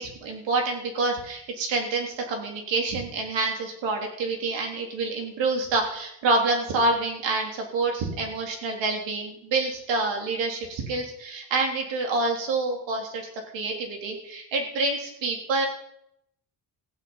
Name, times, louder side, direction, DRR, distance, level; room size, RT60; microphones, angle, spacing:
voice 1, 0.0-13.3 13.5-15.7, right 3 dB, 80° right, 1 dB, 3.6 m, -27 dB
15.5 x 6.2 x 8.8 m, 0.75 s
cardioid pair, 135°, 44 cm